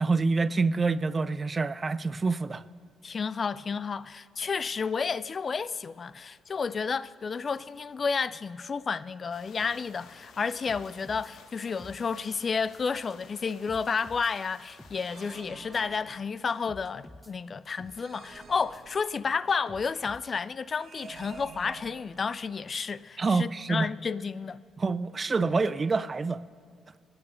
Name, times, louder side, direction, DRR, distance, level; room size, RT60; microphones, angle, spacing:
voice 1, 0.0-2.6 23.2-23.9 24.8-26.4, right 4 dB, 30° right, 0.4 m, -27 dB
voice 2, 3.0-24.6, left 5 dB, 40° left, 0.3 m, -31 dB
Thunderstorm with Soft Rain, 9.3-15.4, left 5 dB, 70° left, 1.2 m, -54 dB
sound 1, 10.5-11.3 11.6-12.0 12.3-12.4 12.7-12.8 13.1-13.2 13.5-14.3 14.7-15.0 15.3-15.4 15.7-15.8 16.1-16.2 16.5-17.3 17.7-18.1 18.3-18.4 18.7-18.8 19.1-19.2 19.5-20.4, left 1 dB, 10° left, 0.7 m, -50 dB
sound 2, 14.9-16.6 17.9-19.5 20.7-22.6, right 4 dB, 50° right, 1.5 m, -49 dB
20.0 x 8.7 x 5.5 m
cardioid pair, 90°, 0 cm